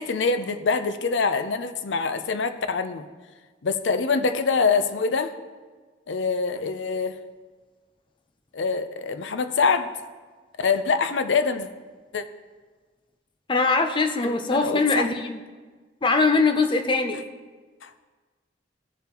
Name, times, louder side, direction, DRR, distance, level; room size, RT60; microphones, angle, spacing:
voice 1, 0.0-3.0 3.6-5.3 6.1-7.1 8.5-9.9 10.6-11.7 12.1-12.2 14.2-15.1 17.8-17.9, left 4 dB, 75° left, 10 dB, 0.6 m, -24 dB
voice 2, 13.5-15.4 16.0-17.2, left 3 dB, 25° left, 6 dB, 0.6 m, -22 dB
15.5 x 6.9 x 3.0 m, 1.4 s
head